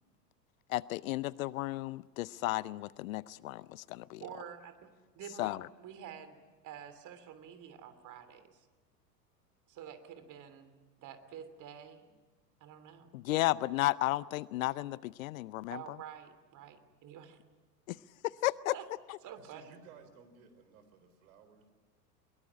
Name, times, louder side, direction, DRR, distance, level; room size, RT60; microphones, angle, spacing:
voice 1, 0.7-4.2 5.4-5.7 13.1-16.0 17.9-18.8 19.1-19.2, left 17 dB, 55° left, 0.7 m, -34 dB
voice 2, 4.2-4.9 5.1-6.4 6.6-8.7 9.7-12.1 12.6-13.1 15.7-17.4 17.9-18.0 18.7-18.9 19.2-19.8, right 9 dB, 40° right, 3.1 m, -49 dB
voice 3, 19.4-21.7, right 5 dB, 60° right, 4.2 m, -57 dB
23.0 x 22.5 x 9.8 m
hypercardioid pair, 90°, 48 cm